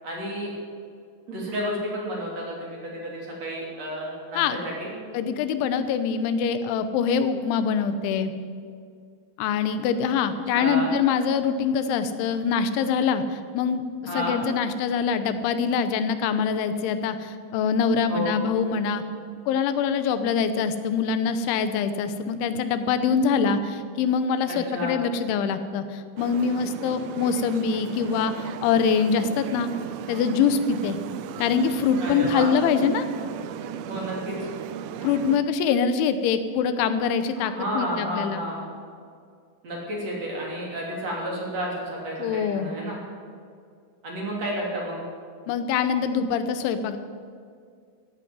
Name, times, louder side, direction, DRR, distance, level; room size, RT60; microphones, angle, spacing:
voice 1, 0.0-0.5 1.3-4.9 10.5-10.9 14.1-14.4 18.1-18.4 24.5-25.0 32.0-32.5 33.9-34.5 37.3-38.6 39.6-43.0 44.0-45.0, equal, 40° right, -2 dB, 3.9 m, -31 dB
voice 2, 5.1-8.3 9.4-19.0 19.5-29.7 30.1-31.0 31.4-33.1 35.0-38.4 42.2-42.7 45.5-47.0, left 6 dB, 90° left, 10 dB, 3.4 m, -24 dB
sound 1, 26.2-35.4, right 8 dB, 90° right, 2.1 m, -36 dB
15.0 x 9.7 x 9.4 m, 2.2 s
omnidirectional pair, 5.2 m